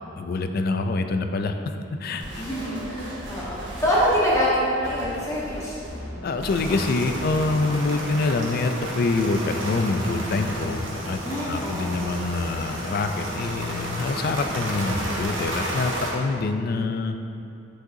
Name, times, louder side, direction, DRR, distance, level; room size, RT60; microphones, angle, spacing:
voice 1, 0.2-2.4 6.2-17.2, left 3 dB, 50° left, 7 dB, 0.3 m, -26 dB
sound 1, 2.2-7.6, equal, 60° right, 1.5 m, -37 dB
voice 2, 2.4-5.8 11.2-12.1 14.4-14.5, equal, 15° left, -8 dB, 1.1 m, -25 dB
sound 2, 6.4-16.1, equal, 75° right, 1.1 m, -32 dB
7.4 x 6.4 x 2.6 m, 2.7 s
head